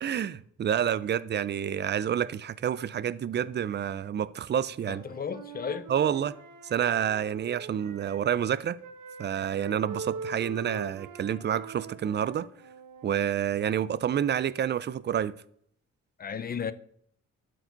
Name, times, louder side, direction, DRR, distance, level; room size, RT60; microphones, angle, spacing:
voice 1, 0.0-5.0 5.9-6.3 6.6-8.8 9.2-12.5 13.0-15.3, right 9 dB, 35° right, 0.4 m, -28 dB
Wind instrument woodwind instrument, 4.8-8.5 8.8-13.2, right 4 dB, 85° right, 1.0 m, -43 dB
voice 2, 4.9-5.9 16.2-16.7, left 7 dB, 30° left, 0.5 m, -34 dB
12.0 x 4.7 x 4.0 m
cardioid pair, 105°, 30 cm